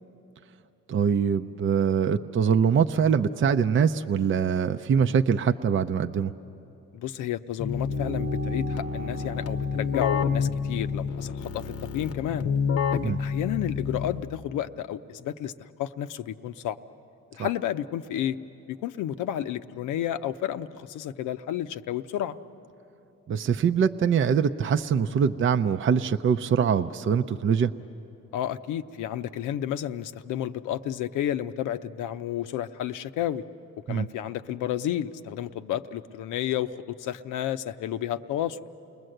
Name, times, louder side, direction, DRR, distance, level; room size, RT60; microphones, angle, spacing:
voice 1, 0.9-6.3 13.0-13.2 17.4-17.5 23.3-27.7 33.9-34.1, right 7 dB, 40° right, 7 dB, 0.6 m, -23 dB
voice 2, 6.9-11.6 11.9-12.5 12.9-15.5 15.8-16.8 17.4-18.4 18.7-22.4 28.3-33.4 33.9-38.6, left 11 dB, 90° left, 10 dB, 0.7 m, -31 dB
Keyboard (musical), 7.6-14.5, left 6 dB, 50° left, 0.8 m, -29 dB
sound 1, 7.8-12.6, right 7 dB, 65° right, 1.0 m, -41 dB
29.0 x 20.0 x 7.9 m, 2.9 s
cardioid pair, 90°, 30 cm